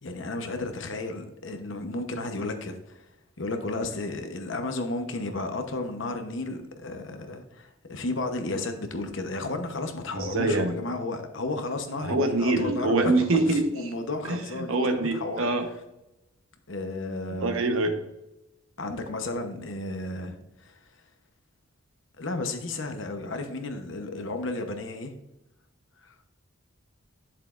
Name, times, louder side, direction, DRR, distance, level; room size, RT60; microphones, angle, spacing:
voice 1, 0.0-3.1 3.4-15.5 16.7-17.6 18.8-21.0 22.2-25.2 26.0-26.1, left 2 dB, 60° left, 6 dB, 0.9 m, -33 dB
voice 2, 10.1-10.7 12.0-13.7 14.3-15.7 17.4-17.9, right 2 dB, 75° right, 5 dB, 1.1 m, -24 dB
8.5 x 7.3 x 2.5 m, 0.91 s
head